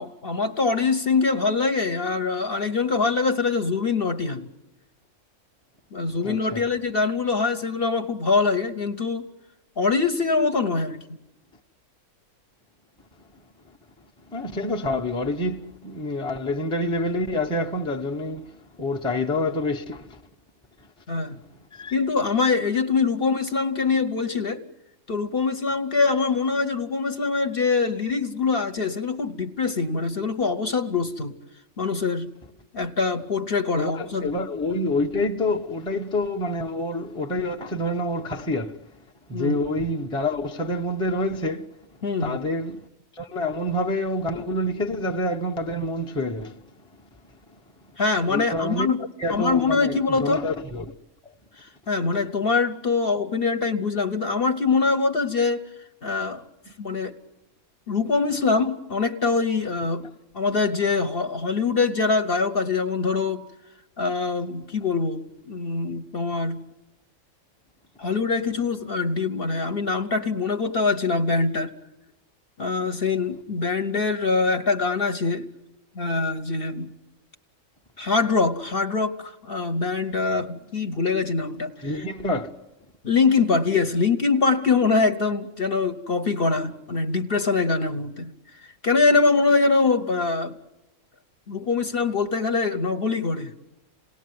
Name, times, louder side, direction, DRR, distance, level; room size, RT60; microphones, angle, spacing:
voice 1, 0.0-4.5 5.9-9.3 9.8-11.0 21.1-21.4 21.9-24.6 25.1-31.3 31.8-32.3 32.7-34.3 39.3-39.6 42.0-42.4 48.0-49.0 49.3-50.4 51.9-55.7 56.0-56.4 56.8-57.1 57.9-60.1 60.3-63.4 64.0-66.6 68.0-71.7 72.6-75.5 75.9-76.9 78.0-81.7 83.0-88.3 88.8-90.6 91.5-93.5, left 4 dB, 45° left, 1.1 m, -23 dB
voice 2, 6.2-6.6 14.3-18.5 18.8-20.2 21.7-22.0 33.7-38.8 39.3-41.7 42.2-42.8 43.2-46.6 48.3-50.9 81.8-82.6, left 1 dB, 5° left, 0.8 m, -27 dB
28.0 x 18.5 x 9.5 m
omnidirectional pair, 1.6 m